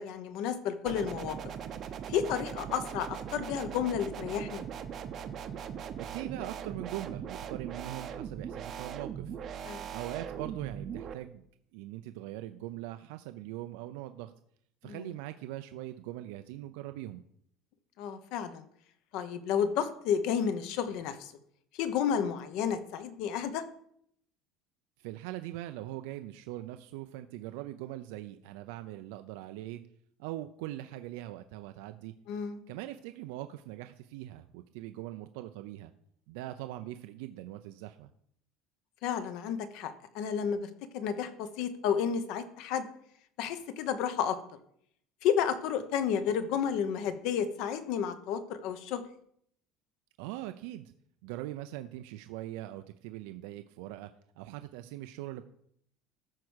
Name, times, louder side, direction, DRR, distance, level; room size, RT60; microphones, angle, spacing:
voice 1, 0.0-1.4 2.1-4.6 9.7-9.9 14.8-15.1 18.0-18.6 19.1-21.3 21.7-23.6 32.3-32.6 39.0-42.8 43.4-44.4 45.2-49.0, left 8 dB, 55° left, 11 dB, 1.0 m, -31 dB
sound 1, 0.9-11.1, right 8 dB, 30° right, 0.7 m, -40 dB
voice 2, 6.0-9.3 9.9-11.4 11.7-14.3 14.8-17.2 25.0-29.8 30.2-32.1 32.7-35.9 36.3-38.1 50.2-50.9 51.2-54.1 54.4-55.4, right 15 dB, 75° right, 9 dB, 0.5 m, -41 dB
13.5 x 4.8 x 6.3 m, 0.70 s
cardioid pair, 170°, 0 cm